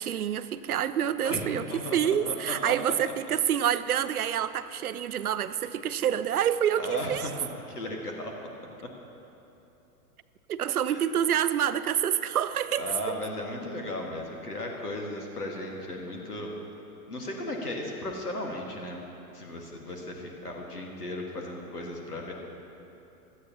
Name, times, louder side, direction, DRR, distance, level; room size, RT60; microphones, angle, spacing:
voice 1, 0.0-1.7 1.9-7.3 10.5-13.2, right 9 dB, 70° right, 14 dB, 0.6 m, -27 dB
voice 2, 1.2-2.4 2.7-2.8 6.8-7.3 7.7-8.5 8.8-8.9 10.9-11.0 12.8-16.5 17.1-19.0 19.3-22.3, left 1 dB, 80° left, 1 dB, 2.0 m, -36 dB
16.5 x 12.5 x 3.0 m, 2.9 s
figure-of-eight pair, 100°, 46 cm